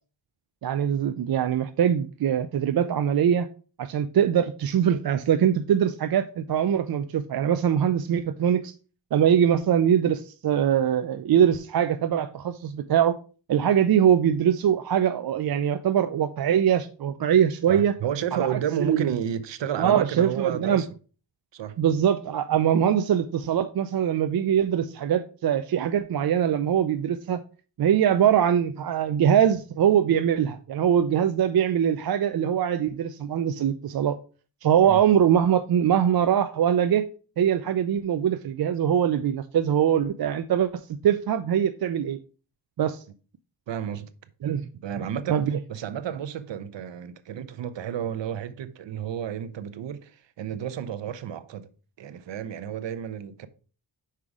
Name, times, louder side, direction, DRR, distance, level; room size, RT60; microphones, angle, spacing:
voice 1, 0.6-3.5 3.8-8.7 9.1-13.2 13.5-17.9 18.3-19.1 19.8-20.8 21.8-27.4 27.8-34.2 34.6-37.1 37.4-42.2 42.8-43.0 44.4-44.7 45.3-45.6, right 9 dB, 60° right, 0.5 m, -22 dB
voice 2, 17.7-20.9 21.5-21.8 34.8-35.0 43.7-44.1 44.8-45.4 45.7-51.7 52.0-53.5, right 9 dB, 85° right, 0.8 m, -31 dB
5.7 x 4.9 x 4.7 m
wide cardioid pair, 90°, 43 cm